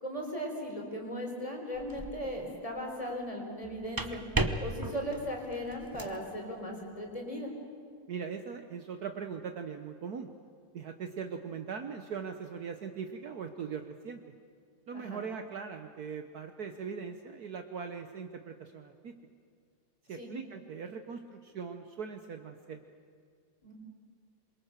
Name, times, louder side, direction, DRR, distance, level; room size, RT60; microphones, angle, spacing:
voice 1, 0.0-4.2 4.6-7.5 14.9-15.2 20.2-20.3 23.6-23.7, equal, 15° left, 0 dB, 4.2 m, -37 dB
sound 1, 1.7-2.3 3.6-6.2, right 2 dB, 20° right, 0.6 m, -35 dB
voice 2, 8.1-10.3 10.7-14.2 14.9-19.1 20.1-22.8, right 6 dB, 60° right, 7 dB, 1.4 m, -40 dB
27.0 x 23.0 x 6.6 m, 2.2 s
omnidirectional pair, 2.0 m